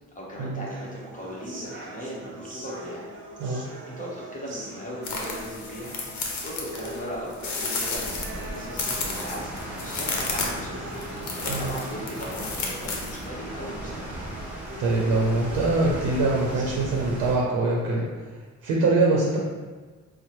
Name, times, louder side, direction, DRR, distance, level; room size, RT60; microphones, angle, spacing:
voice 1, 0.1-3.1 3.8-6.0 6.4-10.9 11.3-14.1, equal, 25° left, -5 dB, 1.0 m, -38 dB
sound 1, 0.7-16.7, right 2 dB, 40° right, 0.8 m, -43 dB
sound 2, 5.0-13.2, left 3 dB, 70° left, 0.8 m, -32 dB
sound 3, 7.9-17.3, right 1 dB, 5° right, 1.2 m, -37 dB
voice 2, 14.8-18.3 18.6-19.4, right 2 dB, 90° right, -2 dB, 0.6 m, -23 dB
5.3 x 2.0 x 3.0 m, 1.4 s
cardioid pair, 90°, 30 cm